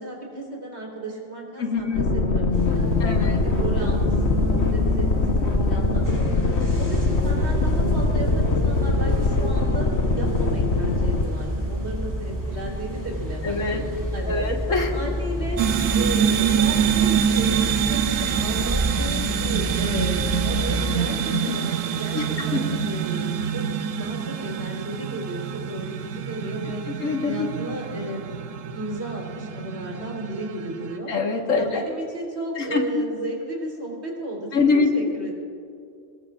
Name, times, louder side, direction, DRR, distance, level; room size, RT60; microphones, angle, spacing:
voice 1, 0.0-2.9 3.2-6.5 6.8-23.7 23.9-26.8 27.2-28.3 28.7-31.1 31.6-34.5 34.7-35.3, right 1 dB, 55° right, -2 dB, 4.0 m, -34 dB
voice 2, 1.6-2.1 3.0-3.4 13.4-13.8 14.3-14.9 21.3-21.5 22.1-22.6 26.9-27.5 31.1-31.8 32.6-32.8 34.5-34.9, left 4 dB, 85° left, 2 dB, 1.9 m, -24 dB
sound 1, 1.9-11.2, left 3 dB, 60° left, 1.4 m, -22 dB
sound 2, 2.5-20.9, equal, 15° right, 2.3 m, -29 dB
sound 3, 15.6-31.0, right 8 dB, 80° right, 1.1 m, -26 dB
25.0 x 21.0 x 2.5 m, 2.4 s
omnidirectional pair, 1.3 m